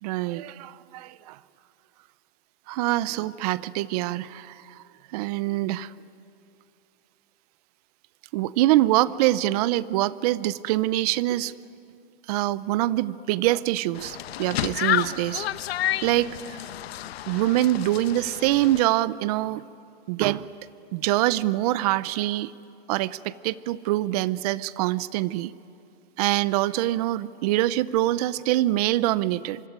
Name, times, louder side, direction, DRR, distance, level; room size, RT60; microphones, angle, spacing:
voice 1, 0.0-1.4 2.7-4.8 5.1-5.9 8.3-11.5 12.3-15.5 16.0-16.4 17.3-19.6 20.1-20.5 20.9-22.5 22.9-25.5 26.2-29.6, right 15 dB, 40° right, 19 dB, 0.6 m, -24 dB
sound 1, 13.9-18.8, left 13 dB, 75° left, 1.0 m, -30 dB
25.5 x 24.5 x 9.6 m, 2.5 s
supercardioid pair, 155°, 31 cm